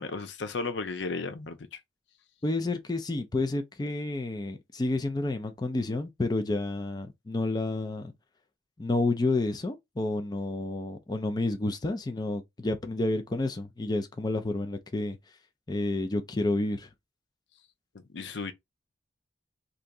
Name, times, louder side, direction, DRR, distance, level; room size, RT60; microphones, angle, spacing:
voice 1, 0.0-1.8 17.9-18.5, left 4 dB, 75° left, 0.6 m, -35 dB
voice 2, 2.4-8.1 8.8-15.2 15.7-16.9, left 2 dB, 20° left, 0.4 m, -30 dB
2.8 x 2.6 x 3.4 m
head